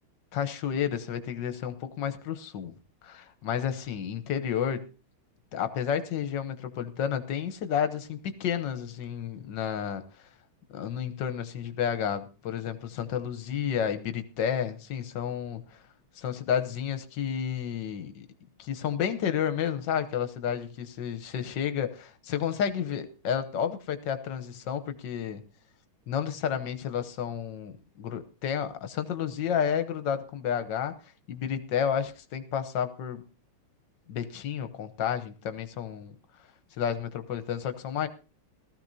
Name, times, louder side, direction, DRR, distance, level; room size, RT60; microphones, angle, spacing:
voice 1, 0.3-2.7 3.0-4.8 5.5-10.0 10.7-15.8 16.2-18.3 18.6-25.4 26.1-30.9 31.3-33.2 34.1-36.1 36.8-38.1, left 8 dB, 60° left, 10 dB, 1.6 m, -31 dB
18.5 x 14.0 x 2.7 m, 0.34 s
omnidirectional pair, 2.3 m